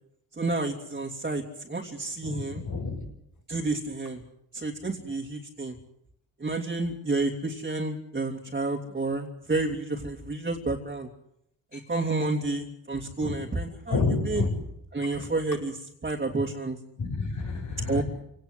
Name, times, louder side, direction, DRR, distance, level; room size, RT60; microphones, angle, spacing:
voice 1, 0.3-2.6 3.5-4.2 4.5-5.8 6.4-11.1 11.7-14.4 14.9-16.8 17.9-18.0, right 3 dB, 25° right, 1 dB, 3.0 m, -30 dB
voice 2, 2.2-2.9 13.2-13.3 13.9-14.5 17.0-18.0, left 4 dB, 55° left, 4 dB, 7.2 m, -29 dB
27.0 x 18.0 x 8.1 m, 0.79 s
cardioid pair, 95°, 35 cm